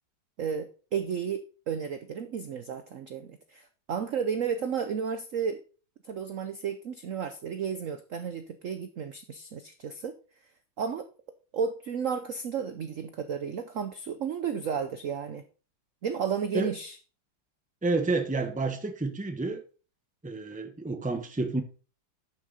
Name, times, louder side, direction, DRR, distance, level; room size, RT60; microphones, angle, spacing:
voice 1, 0.4-5.6 6.0-10.1 10.8-11.1 11.5-15.4 16.0-17.0, right 7 dB, 65° right, 9 dB, 0.7 m, -33 dB
voice 2, 17.8-19.6 20.2-21.6, right 3 dB, 5° right, 6 dB, 0.7 m, -29 dB
11.5 x 6.4 x 4.1 m, 0.37 s
omnidirectional pair, 2.3 m